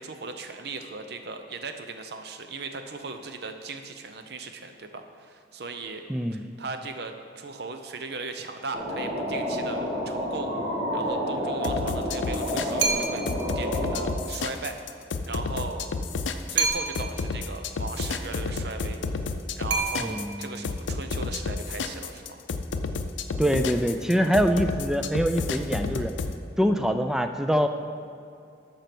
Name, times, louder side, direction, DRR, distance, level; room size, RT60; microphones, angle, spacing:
voice 1, 0.0-6.0 6.3-10.5 10.9-14.8 15.2-15.9 16.5-19.0 19.6-22.4, right 3 dB, 60° right, 7 dB, 0.7 m, -37 dB
voice 2, 6.1-6.4 20.0-20.7 23.4-26.1 26.6-27.7, equal, 5° right, 7 dB, 0.4 m, -24 dB
sound 1, 8.7-14.1, equal, 25° right, 2.0 m, -29 dB
sound 2, 11.6-26.3, left 4 dB, 85° left, 0.5 m, -31 dB
sound 3, 12.8-13.4 16.6-17.3 19.7-20.5, right 4 dB, 90° right, 1.0 m, -28 dB
12.0 x 4.5 x 6.0 m, 2.5 s
head